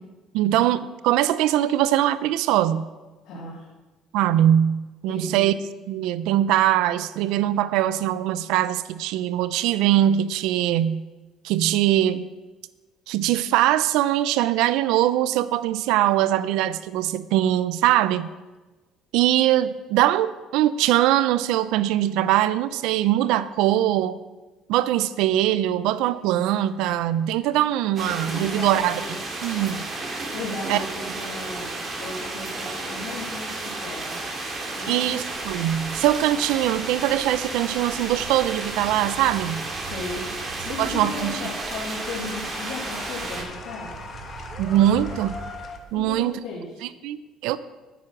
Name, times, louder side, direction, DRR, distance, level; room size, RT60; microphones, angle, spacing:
voice 1, 0.3-2.8 4.1-5.5 5.9-11.0 11.4-12.3 13.1-18.3 19.1-24.2 24.7-29.0 29.4-29.8 30.7-30.8 34.9-39.6 40.8-41.4 44.6-45.4 45.9-46.4 46.8-47.6, right 12 dB, 80° right, 15 dB, 0.5 m, -22 dB
voice 2, 3.2-3.7 5.1-5.5 28.2-29.1 30.3-31.7 32.0-34.2 34.8-35.0 39.8-43.9 45.9-46.8, left 2 dB, 70° left, -5 dB, 2.7 m, -35 dB
sound 1, 26.0-31.3 31.7-34.5 34.8-35.3 35.8-38.5 38.8-45.8, left 5 dB, 35° left, 1.3 m, -45 dB
sound 2, 28.0-43.4, right 2 dB, 30° right, 2.5 m, -33 dB
sound 3, 35.3-46.2, right 6 dB, 50° right, 0.9 m, -43 dB
9.7 x 9.3 x 6.0 m, 1.2 s
cardioid pair, 135°, 0 cm